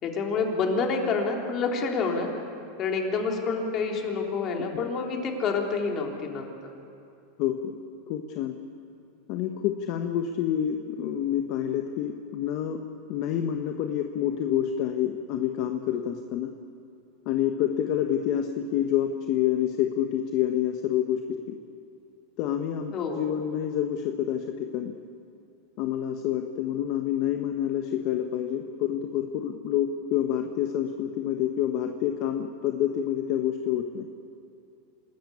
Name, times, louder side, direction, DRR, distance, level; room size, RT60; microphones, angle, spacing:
voice 1, 0.0-2.3 2.8-6.5 22.9-23.2, left 4 dB, 40° left, 1 dB, 3.5 m, -28 dB
voice 2, 7.4-7.7 8.1-8.5 9.3-12.8 13.1-16.5 17.2-21.2 21.5-21.6 22.4-24.9 25.8-34.1, left 10 dB, 55° left, 5 dB, 1.2 m, -28 dB
27.5 x 13.5 x 8.6 m, 2.6 s
supercardioid pair, 120°, 0 cm